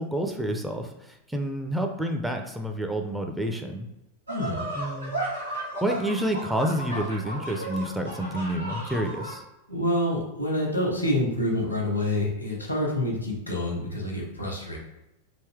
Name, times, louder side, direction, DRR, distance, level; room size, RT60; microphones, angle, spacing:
voice 1, 0.0-3.9 4.8-5.2 5.8-9.4, right 1 dB, 5° right, 3 dB, 0.4 m, -29 dB
voice 2, 4.3-4.6 9.7-14.8, left 1 dB, 90° left, -1 dB, 1.0 m, -27 dB
sound 1, 4.3-9.4, right 1 dB, 90° right, 1.1 m, -34 dB
3.5 x 2.7 x 3.4 m, 0.89 s
figure-of-eight pair, 90°, 0 cm